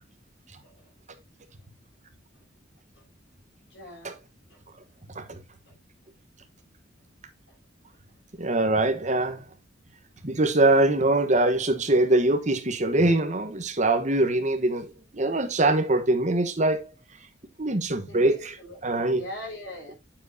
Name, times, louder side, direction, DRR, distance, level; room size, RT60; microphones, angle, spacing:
voice 1, 3.7-4.1 4.5-4.6 18.1-18.8 19.1-19.9, left 1 dB, 65° left, 6.7 m, -40 dB
voice 2, 8.4-9.4 10.2-16.9 17.6-19.2, right 2 dB, 40° right, 1.2 m, -23 dB
9.5 x 7.4 x 2.7 m
head